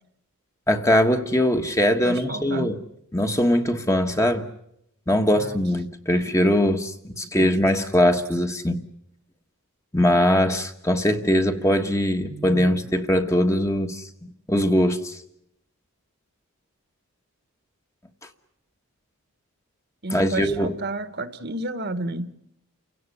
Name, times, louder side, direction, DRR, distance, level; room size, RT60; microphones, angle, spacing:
voice 1, 0.7-2.8 3.1-4.5 5.1-8.8 9.9-15.2 20.1-20.7, left 1 dB, 15° left, 1.4 m, -21 dB
voice 2, 2.0-2.7 5.4-5.6 6.1-6.5 7.4-7.5 12.2-12.9 20.0-22.3, right 2 dB, 45° right, 1.3 m, -32 dB
29.5 x 17.0 x 9.7 m
head